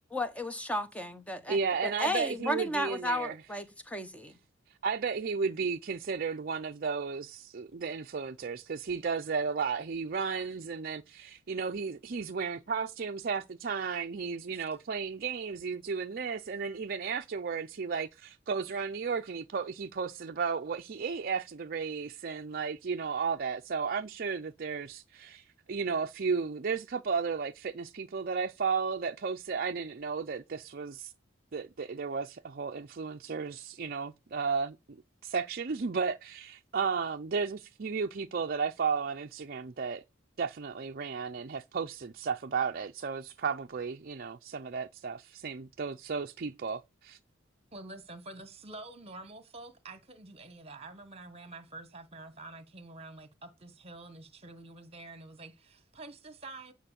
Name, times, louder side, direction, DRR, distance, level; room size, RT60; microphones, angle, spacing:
voice 1, 0.1-4.3, equal, 5° left, 1.1 m, -34 dB
voice 2, 1.5-3.4 4.8-31.1 31.5-35.0 35.2-40.0 40.4-47.2, right 5 dB, 50° right, 0.5 m, -34 dB
voice 3, 47.7-56.7, right 2 dB, 30° right, 1.4 m, -47 dB
9.3 x 4.5 x 7.3 m
head